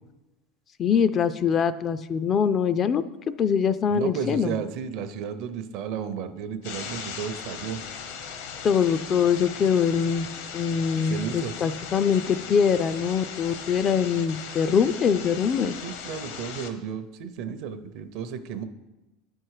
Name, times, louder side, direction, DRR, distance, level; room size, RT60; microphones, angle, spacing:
voice 1, 0.8-3.0 3.4-4.5 8.6-10.3 10.5-15.7, left 7 dB, 30° left, 13 dB, 0.3 m, -23 dB
voice 2, 3.9-7.8 11.0-11.6 15.8-18.6, right 7 dB, 55° right, 10 dB, 0.6 m, -33 dB
sound 1, 6.6-16.7, left 6 dB, 70° left, 0.9 m, -38 dB
9.2 x 4.5 x 4.8 m, 1.0 s
supercardioid pair, 140°, 0 cm